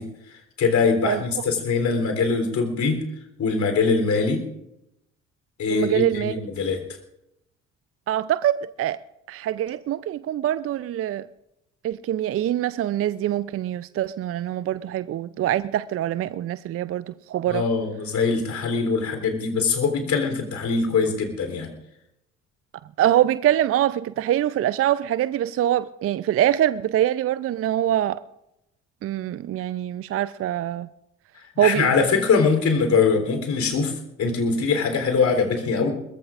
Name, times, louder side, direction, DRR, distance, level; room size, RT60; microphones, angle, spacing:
voice 1, 0.6-3.1 3.4-4.4 5.6-6.8 17.5-21.7 31.6-35.9, left 4 dB, 50° left, 3.6 m, -22 dB
voice 2, 5.7-6.4 8.1-9.0 9.3-11.3 11.8-17.6 23.0-28.2 29.0-30.9 31.6-32.0, right 12 dB, 40° right, 0.5 m, -24 dB
22.5 x 20.5 x 2.5 m
figure-of-eight pair, 50°, 37 cm